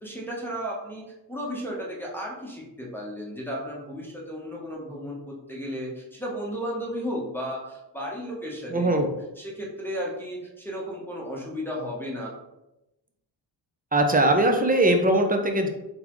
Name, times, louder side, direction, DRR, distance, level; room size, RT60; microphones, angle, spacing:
voice 1, 0.0-9.1 9.4-12.3, equal, 5° left, -4 dB, 0.9 m, -34 dB
voice 2, 8.7-9.1 13.9-15.7, right 1 dB, 20° right, 4 dB, 0.5 m, -21 dB
3.9 x 3.5 x 3.0 m, 0.95 s
wide cardioid pair, 100°, 46 cm